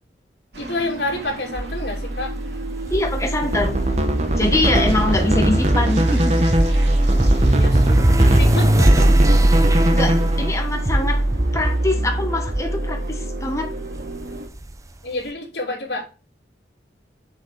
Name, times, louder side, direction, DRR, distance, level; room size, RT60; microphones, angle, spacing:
sound 1, 0.5-14.5, right 1 dB, 85° right, 2.1 m, -35 dB
voice 1, 0.6-2.3 5.2-5.5 7.4-8.0 8.4-9.1 15.0-16.0, left 2 dB, 65° left, 3.0 m, -28 dB
sound 2, 1.6-14.7, right 1 dB, 20° right, 0.6 m, -20 dB
voice 2, 2.9-3.8 4.4-6.5 9.9-11.2 11.5-13.7, left 2 dB, 15° left, 1.4 m, -23 dB
sound 3, 3.4-10.5, right 1 dB, 35° right, 1.1 m, -22 dB
6.9 x 5.7 x 6.3 m
head